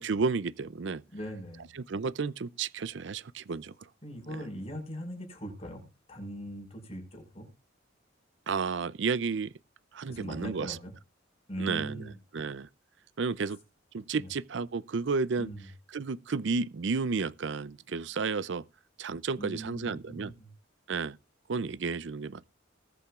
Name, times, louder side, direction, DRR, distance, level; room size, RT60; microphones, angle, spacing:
voice 1, 0.0-1.0 1.7-3.7 4.3-4.4 8.5-9.5 9.9-10.8 11.6-12.7 13.2-13.6 13.9-15.5 15.9-18.6 19.0-20.3 20.9-21.2 21.5-22.5, right 4 dB, 65° right, 0.5 m, -32 dB
voice 2, 1.1-1.7 4.0-5.8 6.1-7.5 10.1-10.9 11.5-12.2 13.5-13.6 14.1-14.3 15.4-15.7 19.4-20.5, equal, 35° left, 5.3 m, -40 dB
20.5 x 8.5 x 2.4 m
head